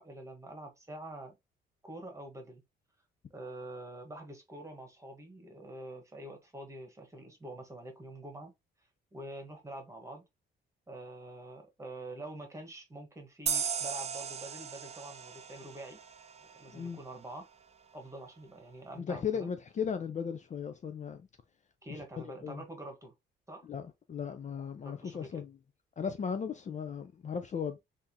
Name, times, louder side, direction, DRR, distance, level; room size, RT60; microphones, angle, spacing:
voice 1, 0.0-1.4 1.8-2.6 3.3-8.5 9.1-10.2 10.9-16.0 16.5-17.5 17.9-19.5 21.8-23.1 23.5-23.7 24.8-25.4, right 1 dB, 15° right, 1.4 m, -46 dB
sound 1, 13.5-16.8, right 6 dB, 35° right, 0.5 m, -37 dB
voice 2, 19.0-21.2 22.4-22.6 23.7-23.8 24.1-25.5 26.0-27.8, left 7 dB, 35° left, 0.5 m, -36 dB
3.5 x 2.7 x 2.8 m
cardioid pair, 90°, 20 cm